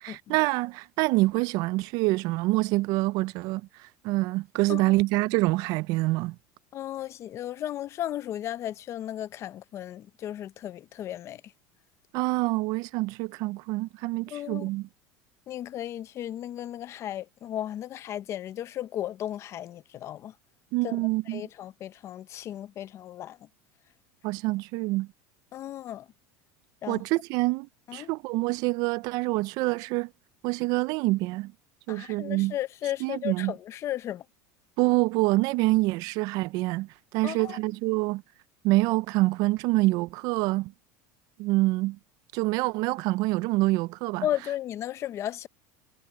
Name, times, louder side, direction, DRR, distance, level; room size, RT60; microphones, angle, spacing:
voice 1, 0.0-3.6 4.0-6.4 12.1-14.9 20.7-21.4 24.2-25.1 26.9-27.7 27.9-30.1 30.4-31.5 31.9-32.5 33.0-33.5 34.8-38.2 38.6-40.7 41.4-42.0 42.3-44.3, right 21 dB, 55° right, 0.4 m, -26 dB
voice 2, 6.7-11.4 14.3-14.7 15.5-20.3 20.8-21.0 21.3-23.4 25.5-26.1 26.8-27.0 27.9-28.1 31.9-34.2 37.2-37.6 44.2-45.5, left 12 dB, 35° left, 0.6 m, -35 dB
supercardioid pair, 145°, 8 cm